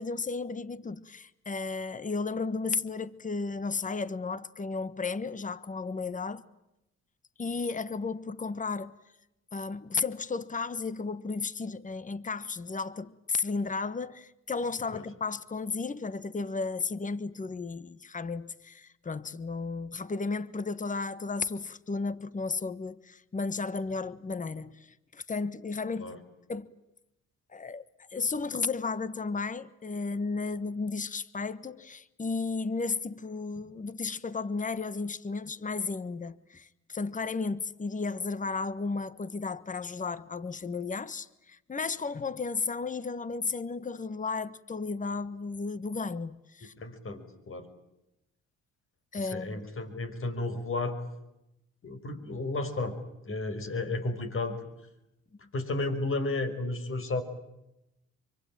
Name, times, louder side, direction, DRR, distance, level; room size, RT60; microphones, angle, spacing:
voice 1, 0.0-6.4 7.4-8.9 9.5-26.1 26.5-26.7 27.5-27.8 28.1-46.7 49.1-49.6, left 4 dB, 25° left, 1.3 m, -34 dB
voice 2, 46.8-47.7 49.2-51.0 51.8-53.0 53.3-54.6 55.5-57.2, left 2 dB, 45° left, 5.5 m, -33 dB
26.0 x 24.5 x 8.9 m
cardioid pair, 90°, 30 cm